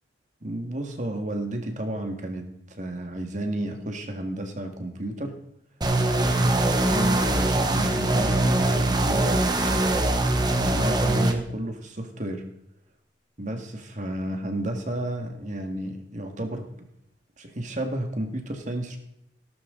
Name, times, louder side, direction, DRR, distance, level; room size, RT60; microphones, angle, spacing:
voice 1, 0.4-5.4 6.2-6.6 6.9-10.0 10.6-12.4 13.4-16.7 17.4-19.0, right 1 dB, 45° right, 4 dB, 2.0 m, -32 dB
sound 1, 5.8-11.3, right 2 dB, 25° right, 1.2 m, -22 dB
17.5 x 12.0 x 3.9 m, 0.78 s
head